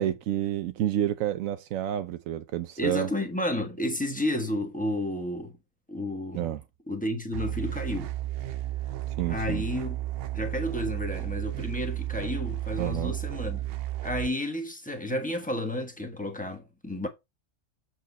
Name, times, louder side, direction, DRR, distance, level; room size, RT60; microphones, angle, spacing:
voice 1, 0.0-3.1 6.3-6.6 9.2-9.6 12.8-13.1, right 12 dB, 85° right, 1.0 m, -29 dB
voice 2, 2.8-5.6 5.9-6.5 6.9-8.1 9.3-10.0 10.3-13.6 14.0-17.1, left 1 dB, 5° left, 1.3 m, -31 dB
sound 1, 7.3-14.3, right 15 dB, 60° right, 0.7 m, -33 dB
7.3 x 4.3 x 4.1 m
omnidirectional pair, 1.4 m